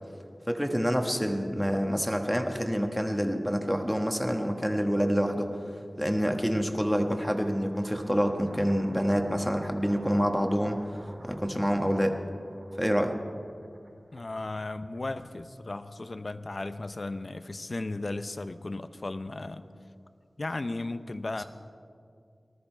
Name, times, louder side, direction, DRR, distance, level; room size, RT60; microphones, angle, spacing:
voice 1, 0.5-5.5 6.0-10.8 11.2-12.2 12.8-13.1, equal, ahead, 4 dB, 1.3 m, -27 dB
sound 1, 7.1-15.3, right 1 dB, 65° right, 3.2 m, -51 dB
voice 2, 14.1-19.7 20.4-21.4, left 2 dB, 55° left, 11 dB, 0.6 m, -35 dB
19.0 x 13.0 x 4.5 m, 2.3 s
wide cardioid pair, 70°, 0 cm